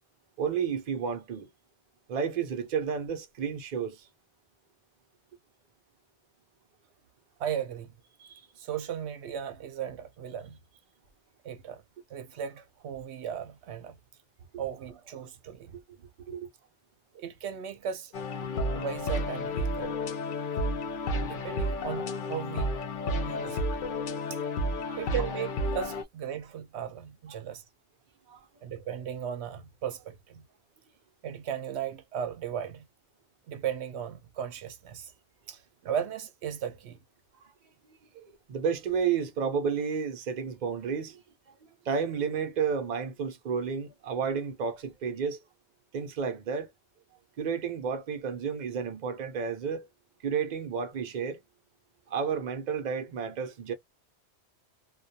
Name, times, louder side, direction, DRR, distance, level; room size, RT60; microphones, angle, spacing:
voice 1, 0.4-1.5 2.1-4.1 8.2-8.5 16.3-16.5 24.8-25.0 28.3-28.5 37.8-41.2 41.6-45.4 45.9-46.7 47.4-49.9 50.2-51.4 52.1-53.7, right 6 dB, 50° right, 0.7 m, -31 dB
voice 2, 7.4-7.9 8.6-10.6 11.4-11.8 12.1-14.0 14.6-15.7 17.1-18.1 18.7-20.0 21.1-22.7 23.3-23.7 24.3-24.5 24.9-27.6 28.6-30.4 31.2-32.9 33.5-35.1 35.5-37.0, right 8 dB, 80° right, 0.9 m, -36 dB
sound 1, 18.1-26.0, left 1 dB, 55° left, 0.6 m, -31 dB
2.3 x 2.2 x 2.6 m
omnidirectional pair, 1.1 m